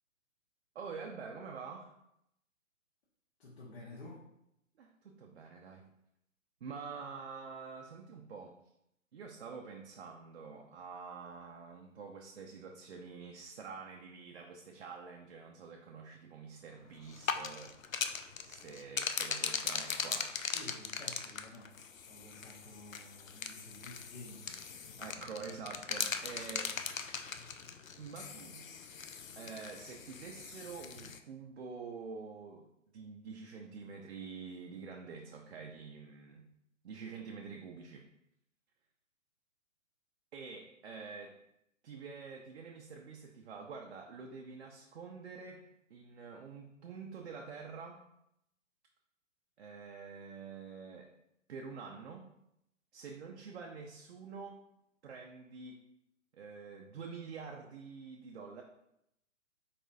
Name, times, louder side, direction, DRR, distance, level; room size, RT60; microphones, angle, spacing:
voice 1, 0.7-1.9 4.8-5.9 6.6-8.5 9.1-17.7 18.4-20.3 25.0-26.7 28.0-28.6 29.4-32.7 32.9-36.4 36.8-38.0 40.3-41.3 41.8-45.6 45.9-48.0 49.6-51.1 51.5-52.3 52.9-54.6 55.0-55.8 56.3-58.6, right 5 dB, 55° right, 1 dB, 0.6 m, -47 dB
voice 2, 3.4-4.3 20.5-21.8 22.1-25.0, left 2 dB, 55° left, -7 dB, 1.2 m, -52 dB
sound 1, 17.0-31.2, left 6 dB, 80° left, 0.5 m, -40 dB
4.2 x 4.1 x 2.6 m, 0.80 s
figure-of-eight pair, 125°, 39 cm